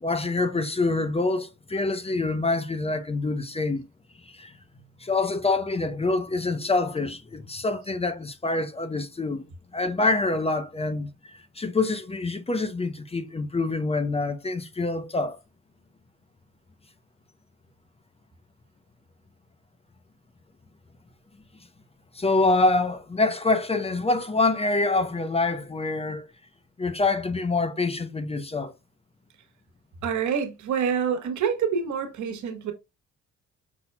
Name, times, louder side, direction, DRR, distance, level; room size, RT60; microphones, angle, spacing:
voice 1, 0.0-3.8 4.3-4.5 5.0-9.5 9.7-11.1 11.6-15.4 22.1-26.3 26.8-28.7, left 3 dB, 20° left, 0.6 m, -26 dB
voice 2, 30.0-32.7, right 7 dB, 75° right, 1.3 m, -27 dB
5.6 x 4.1 x 2.2 m
cardioid pair, 90°, 30 cm